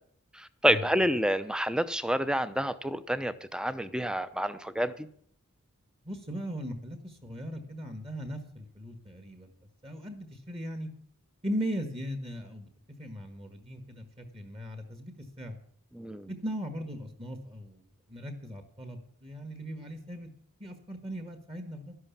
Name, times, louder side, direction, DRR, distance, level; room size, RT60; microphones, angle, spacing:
voice 1, 0.3-5.1 15.9-16.3, equal, 5° right, 0.7 m, -28 dB
voice 2, 6.0-9.5 9.8-10.9 11.4-12.7 13.0-15.5 16.3-20.3 20.6-21.9, equal, 25° right, 1.6 m, -38 dB
12.5 x 11.5 x 7.3 m
head